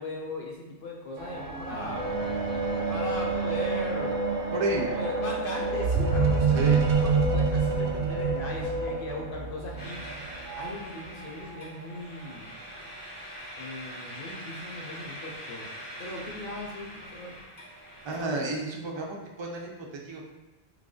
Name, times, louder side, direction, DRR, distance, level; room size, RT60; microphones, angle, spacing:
voice 1, 0.0-2.1 2.9-4.2 4.9-10.0 10.6-12.5 13.6-15.7 16.0-17.4, left 1 dB, 60° left, -2 dB, 0.8 m, -38 dB
sound 1, 1.2-10.7 11.5-11.6, right 5 dB, 65° right, 0.7 m, -28 dB
sound 2, 2.0-8.9, left 1 dB, 25° right, 0.9 m, -32 dB
voice 2, 4.5-4.9 6.5-6.8 18.0-19.7 20.0-20.3, right 2 dB, 40° right, 0 dB, 0.4 m, -31 dB
sound 3, 9.8-18.2, equal, 30° left, 0.9 m, -43 dB
3.2 x 2.5 x 3.7 m, 1.1 s
omnidirectional pair, 1.1 m